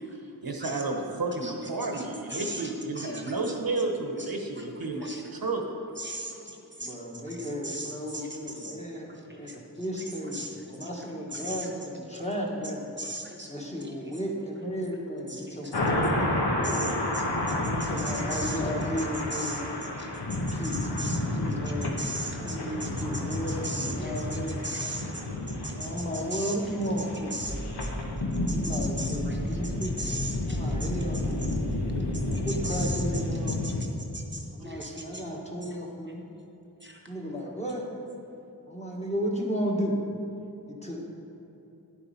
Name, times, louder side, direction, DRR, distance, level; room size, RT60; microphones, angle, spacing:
voice 1, 0.4-5.6, right 2 dB, 65° right, 2 dB, 1.0 m, -31 dB
voice 2, 1.9-3.3 4.6-4.7 5.0-5.2 6.0-8.8 9.1-9.6 10.3-10.5 10.8-10.9 11.3-11.7 13.0-13.9 15.3-15.7 16.2-16.3 16.6-18.6 19.3-19.6 20.0-20.1 20.4-21.4 22.0-22.9 23.3-26.6 27.3-27.6 27.8-27.9 28.5-30.9 32.4-33.0 33.5-33.7 34.1-35.2 36.8-37.0, right 1 dB, 30° right, 1 dB, 1.0 m, -39 dB
voice 3, 6.8-12.9 13.5-15.9 17.6-19.8 20.5-21.0 21.3-22.0 22.4-24.6 25.7-27.4 28.5-29.9 30.5-31.5 32.4-33.8 34.5-36.2 37.1-37.9 38.7-40.0 40.7-41.0, equal, 15° left, -1 dB, 1.4 m, -34 dB
sound 1, 15.7-33.8, left 1 dB, 90° left, 1.1 m, -31 dB
sound 2, 27.5-33.2, right 1 dB, 5° right, 1.2 m, -37 dB
10.0 x 6.9 x 4.2 m, 2.9 s
wide cardioid pair, 50°, 39 cm